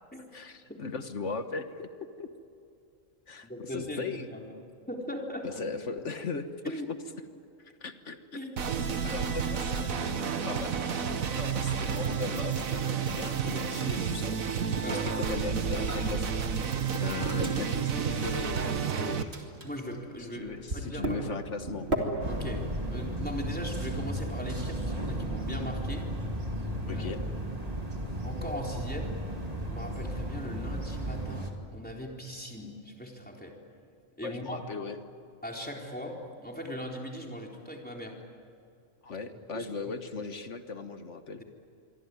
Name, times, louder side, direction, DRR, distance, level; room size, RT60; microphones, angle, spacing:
voice 1, 0.3-1.9 2.2-2.3 3.3-4.3 5.4-6.8 7.6-8.2 9.0-14.3 14.9-16.4 17.0-19.3 20.3-21.9 26.9-27.2 34.2-35.0 39.0-41.4, left 4 dB, 60° left, 8 dB, 1.6 m, -38 dB
voice 2, 3.4-4.5 4.9-5.6 6.6-6.9 8.4-8.5 14.8-15.1 19.6-21.2 22.2-26.1 26.9-27.1 28.2-29.1 29.7-33.6 34.2-34.7 35.4-38.1 39.3-39.9, equal, 5° left, 0 dB, 3.9 m, -39 dB
sound 1, 8.6-19.2, right 6 dB, 90° right, 1.7 m, -30 dB
Microwave oven, 15.9-16.4 16.6-18.9 19.3-30.3, right 1 dB, 50° right, 2.9 m, -40 dB
sound 2, 22.2-31.5, right 1 dB, 30° right, 2.5 m, -35 dB
26.5 x 23.5 x 9.6 m, 2.5 s
omnidirectional pair, 1.4 m